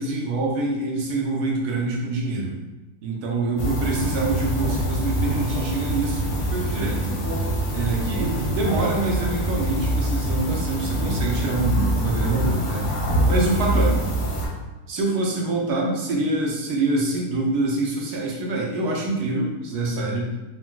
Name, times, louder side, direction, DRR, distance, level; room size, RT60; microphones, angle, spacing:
voice 1, 0.0-2.6 3.0-12.8 13.3-14.0 14.9-20.3, right 2 dB, 75° right, -2 dB, 1.1 m, -25 dB
sound 1, 3.6-14.5, equal, 60° left, 0.8 m, -24 dB
3.8 x 2.2 x 2.2 m, 1.1 s
omnidirectional pair, 1.7 m